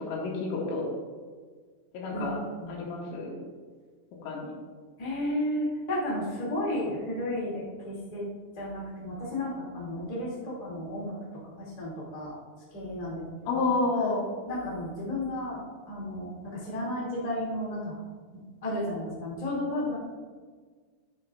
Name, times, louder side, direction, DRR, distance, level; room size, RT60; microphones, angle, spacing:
voice 1, 0.1-0.8 1.9-2.4 2.7-3.3 4.2-4.5 13.5-14.3, left 3 dB, 85° left, -3 dB, 4.1 m, -29 dB
voice 2, 2.1-2.7 5.0-8.3 8.6-11.1 11.6-12.4 12.7-13.2 13.5-13.7 14.5-15.6 15.9-18.0 18.6-20.0, left 1 dB, 40° left, -6 dB, 0.5 m, -33 dB
12.5 x 9.0 x 2.5 m, 1.5 s
omnidirectional pair, 5.7 m